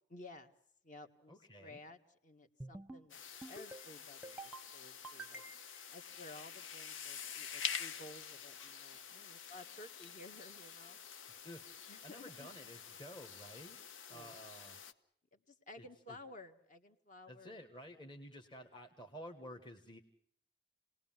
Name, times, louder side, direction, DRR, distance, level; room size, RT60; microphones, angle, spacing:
voice 1, 0.1-0.5 0.8-5.4 5.9-11.0 11.9-12.5 14.1-14.4 15.3-17.6, left 2 dB, 40° left, 6 dB, 1.8 m, -55 dB
voice 2, 1.3-1.8 11.4-11.6 12.0-13.8 14.1-14.8 15.8-16.2 17.3-20.0, equal, 25° left, 2 dB, 1.6 m, -52 dB
sound 1, 2.6-3.0 3.4-3.9 4.2-4.7 5.0-5.8, right 2 dB, 5° right, 0.9 m, -49 dB
sound 2, 3.1-14.9, left 7 dB, 85° left, 1.2 m, -47 dB
29.5 x 19.5 x 7.5 m, 0.68 s
head